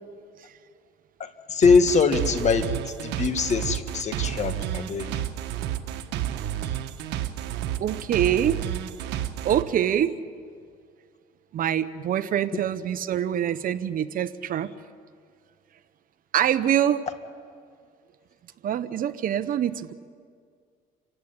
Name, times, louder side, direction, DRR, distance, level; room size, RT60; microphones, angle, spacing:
voice 1, 1.2-2.7 3.0-5.1, left 5 dB, 45° left, 9 dB, 1.8 m, -22 dB
sound 1, 1.6-9.6, right 12 dB, 85° right, 1.4 m, -30 dB
voice 2, 7.8-8.6 9.4-10.2 11.5-14.7 16.3-17.1 18.6-19.9, right 10 dB, 55° right, 13 dB, 1.0 m, -25 dB
28.5 x 16.0 x 9.9 m, 2.1 s
cardioid pair, 110°, 17 cm